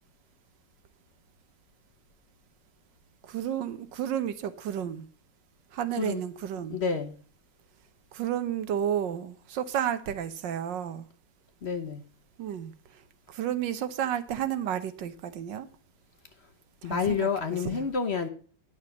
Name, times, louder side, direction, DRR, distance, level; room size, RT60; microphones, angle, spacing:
voice 1, 3.2-5.0 5.7-6.8 8.1-11.1 12.4-13.0 13.3-15.7 16.8-17.8, right 10 dB, 90° right, 1.6 m, -32 dB
voice 2, 6.7-7.1 11.6-12.0 16.8-18.3, left 5 dB, 45° left, 0.9 m, -29 dB
10.0 x 6.5 x 6.8 m
omnidirectional pair, 1.9 m